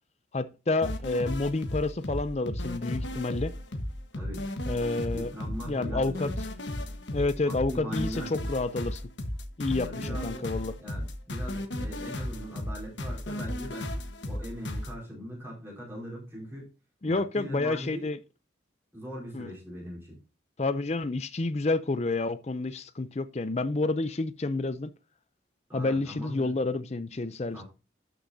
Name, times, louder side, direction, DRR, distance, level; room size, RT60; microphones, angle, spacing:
voice 1, 0.3-3.5 4.7-5.3 5.6-6.3 7.1-9.0 9.6-10.8 17.0-18.2 19.3-19.5 20.6-24.9 25.7-27.6, left 3 dB, 35° left, 0.5 m, -29 dB
sound 1, 0.8-14.9, left 1 dB, 75° left, 1.3 m, -35 dB
voice 2, 4.1-4.4 5.1-6.3 7.4-8.3 9.8-10.4 10.8-13.9 14.2-16.7 17.0-18.1 18.9-20.2 25.7-26.5 27.5-27.6, equal, 15° right, 4.7 m, -40 dB
12.5 x 6.8 x 2.7 m
head